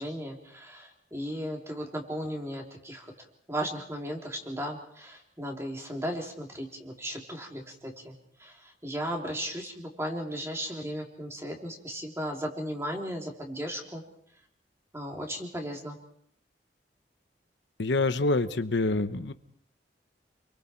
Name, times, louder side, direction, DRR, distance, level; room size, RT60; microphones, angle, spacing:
voice 1, 0.0-3.1 3.5-14.0 14.9-16.0, equal, 15° right, 1 dB, 3.4 m, -36 dB
voice 2, 17.8-19.3, left 2 dB, 85° left, 10 dB, 1.0 m, -26 dB
30.0 x 23.0 x 4.6 m, 0.64 s
head